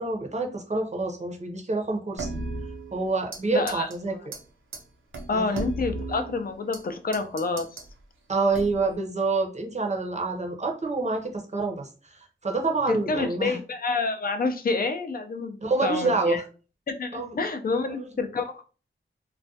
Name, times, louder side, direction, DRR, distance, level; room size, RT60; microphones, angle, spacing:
voice 1, 0.0-2.4 2.9-4.2 5.3-5.6 8.3-13.6 15.6-16.4 17.1-17.3 17.7-18.0, right 3 dB, 35° right, 2 dB, 0.6 m, -27 dB
sound 1, 2.2-3.4 3.7-4.0 4.3-4.4 4.7-4.8 5.1-6.8 7.1-7.9 8.5-9.0, right 2 dB, 80° right, 0.5 m, -35 dB
voice 2, 3.5-3.9 5.3-7.7 12.9-16.4 16.9-18.6, left 3 dB, 50° left, 7 dB, 0.4 m, -28 dB
2.3 x 2.1 x 2.7 m, 0.36 s
wide cardioid pair, 80°, 20 cm